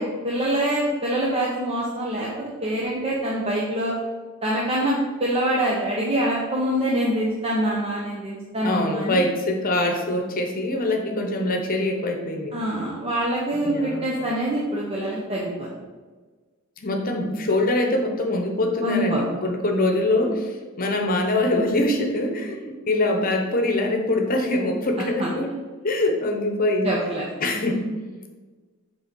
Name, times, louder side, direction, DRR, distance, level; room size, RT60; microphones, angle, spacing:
voice 1, 0.0-3.9 4.4-9.2 12.5-15.7 18.8-19.2 25.0-25.3 26.8-27.3, right 1 dB, 30° right, -5 dB, 0.9 m, -25 dB
voice 2, 8.6-12.6 13.6-14.1 16.8-25.5 25.8-27.0 27.4-27.8, left 1 dB, 45° left, 3 dB, 1.0 m, -24 dB
6.8 x 3.8 x 5.3 m, 1.4 s
head